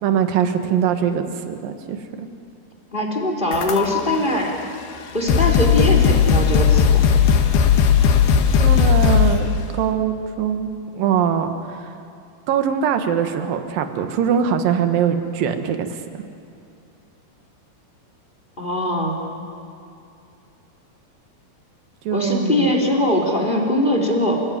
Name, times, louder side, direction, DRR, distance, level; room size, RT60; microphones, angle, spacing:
voice 1, 0.0-2.3 8.6-10.7 11.0-11.9 12.5-15.9 22.0-22.7, right 8 dB, 70° right, 7 dB, 3.0 m, -22 dB
voice 2, 2.9-4.6 5.1-7.0 18.6-19.2 22.1-24.4, left 1 dB, 15° left, 1 dB, 3.1 m, -21 dB
sound 1, 3.5-4.2 4.9-5.0 5.3-9.5, left 7 dB, 80° left, 3.4 m, -16 dB
29.0 x 17.5 x 9.4 m, 2.5 s
omnidirectional pair, 4.4 m